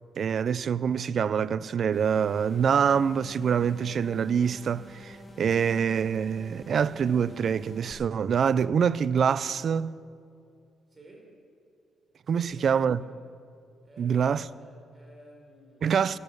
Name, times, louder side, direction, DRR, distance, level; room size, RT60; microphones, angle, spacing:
voice 1, 0.2-9.9 12.3-13.0 14.0-14.5 15.8-16.2, right 7 dB, 55° right, 0.4 m, -25 dB
sound 1, 1.9-7.9, equal, 15° left, 3.1 m, -48 dB
voice 2, 10.9-11.4 12.2-13.2 13.8-16.2, right 1 dB, 30° right, 4.0 m, -54 dB
18.5 x 11.0 x 6.9 m
cardioid pair, 90°, 0 cm